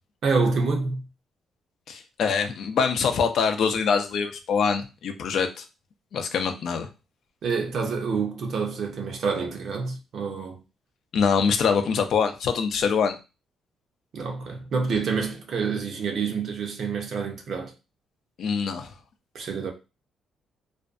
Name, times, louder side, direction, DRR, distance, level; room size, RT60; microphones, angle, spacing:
voice 1, 0.2-1.0 7.4-10.6 14.1-17.7 19.3-19.7, right 4 dB, 60° right, 0.6 m, -27 dB
voice 2, 1.9-5.6 6.1-6.9 11.1-13.1 18.4-18.9, left 6 dB, 65° left, 0.5 m, -24 dB
2.5 x 2.2 x 2.5 m
cardioid pair, 90°, 0 cm